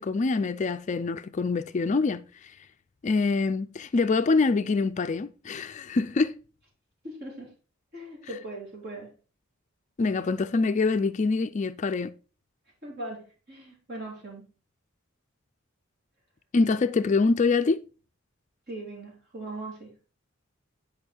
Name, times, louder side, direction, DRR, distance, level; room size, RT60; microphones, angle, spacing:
voice 1, 0.0-2.6 3.0-6.4 10.0-12.1 16.5-17.8, left 4 dB, 35° left, 0.3 m, -25 dB
voice 2, 7.0-7.5 7.9-9.1 12.8-14.5 18.7-19.9, right 1 dB, 50° right, 3.6 m, -39 dB
8.7 x 5.3 x 4.4 m
head